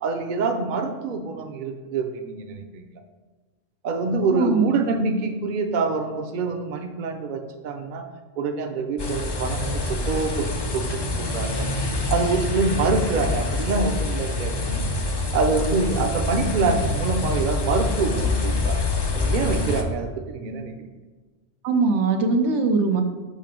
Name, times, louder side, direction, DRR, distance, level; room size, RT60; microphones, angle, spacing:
voice 1, 0.0-2.8 3.8-8.1 8.4-11.7 12.1-14.8 15.3-18.8 19.1-20.7, right 4 dB, 50° right, 5 dB, 0.7 m, -26 dB
voice 2, 4.3-4.7 21.6-23.0, right 4 dB, 90° right, 5 dB, 1.0 m, -21 dB
sound 1, 9.0-19.8, left 2 dB, 35° left, 0.4 m, -26 dB
6.6 x 3.3 x 5.0 m, 1.3 s
omnidirectional pair, 1.1 m